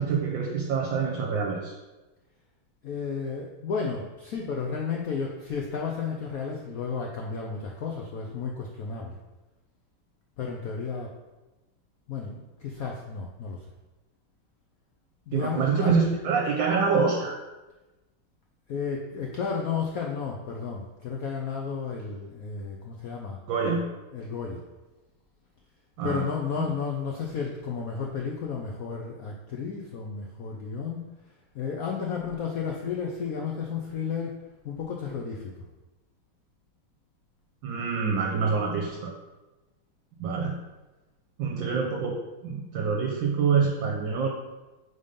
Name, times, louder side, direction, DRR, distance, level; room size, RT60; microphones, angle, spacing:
voice 1, 0.0-1.7 15.3-17.4 23.5-23.8 26.0-26.3 26.6-26.7 37.6-39.1 40.2-40.5 41.4-44.3, right 5 dB, 70° right, -1 dB, 1.4 m, -26 dB
voice 2, 2.8-9.2 10.4-11.1 12.1-13.6 15.3-16.0 18.7-23.4 24.1-24.6 26.0-31.1 31.5-35.7, left 6 dB, 85° left, 0 dB, 0.7 m, -32 dB
5.2 x 4.0 x 5.1 m, 1.1 s
omnidirectional pair, 2.3 m